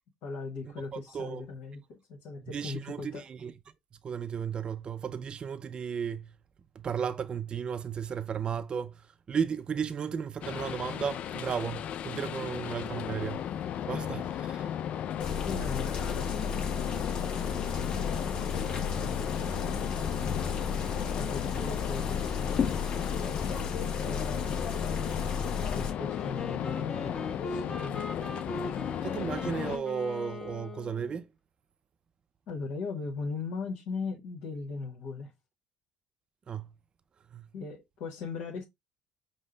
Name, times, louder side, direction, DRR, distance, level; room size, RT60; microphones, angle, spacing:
voice 1, 0.2-3.3 15.4-17.6 17.9-20.5 20.9-25.3 25.7-28.3 28.6-28.9 32.5-35.3 37.5-38.6, left 4 dB, 75° left, 1.2 m, -39 dB
voice 2, 2.5-3.5 4.0-6.3 6.8-8.9 9.3-13.4 13.9-14.7 21.2-21.3 29.0-31.2 36.5-36.7 37.3-37.4, right 7 dB, 40° right, 0.4 m, -34 dB
sound 1, 10.4-29.8, left 10 dB, 60° left, 0.4 m, -35 dB
sound 2, 15.2-25.9, left 5 dB, 45° left, 1.3 m, -34 dB
Wind instrument woodwind instrument, 26.0-31.2, left 2 dB, 25° left, 0.9 m, -40 dB
5.4 x 2.1 x 3.7 m
supercardioid pair, 70°, 2 cm